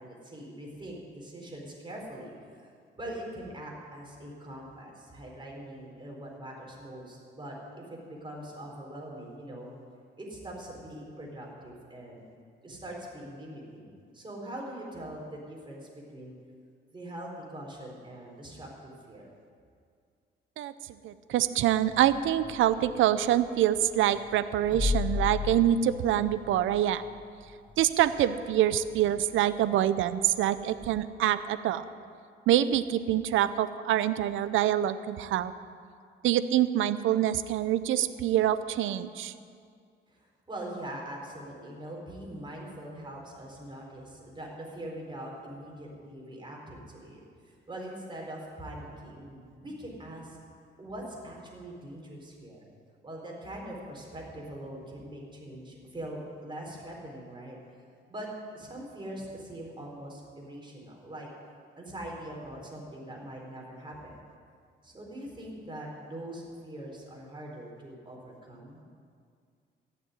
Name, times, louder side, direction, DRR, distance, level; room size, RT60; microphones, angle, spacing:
voice 1, 0.0-2.7 3.0-9.7 10.2-12.2 12.6-16.3 16.9-19.3 40.1-50.4 50.8-52.7 53.0-57.6 58.1-58.3 58.5-61.3 61.8-64.2 64.8-68.8, right 1 dB, 25° right, -1 dB, 4.3 m, -42 dB
voice 2, 21.0-27.0 27.8-31.9 32.5-35.5 36.2-39.3, right 11 dB, 80° right, 14 dB, 0.6 m, -25 dB
sound 1, 21.9-23.1 24.6-27.2 27.7-27.8 30.8-31.0, left 5 dB, 25° left, 0.8 m, -33 dB
14.5 x 6.9 x 9.5 m, 2.2 s
cardioid pair, 90°, 20 cm